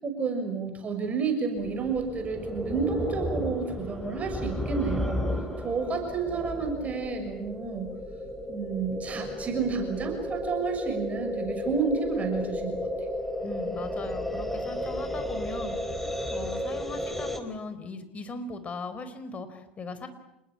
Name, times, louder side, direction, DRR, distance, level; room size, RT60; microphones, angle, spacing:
voice 1, 0.0-5.2 5.6-7.9 8.5-12.8, right 5 dB, 30° right, 6 dB, 6.2 m, -30 dB
sound 1, 1.5-17.4, left 1 dB, 5° left, 4.0 m, -33 dB
voice 2, 13.4-15.8 16.3-20.1, left 3 dB, 30° left, 11 dB, 4.4 m, -39 dB
28.5 x 20.0 x 8.8 m, 0.85 s
hypercardioid pair, 85°, 5 cm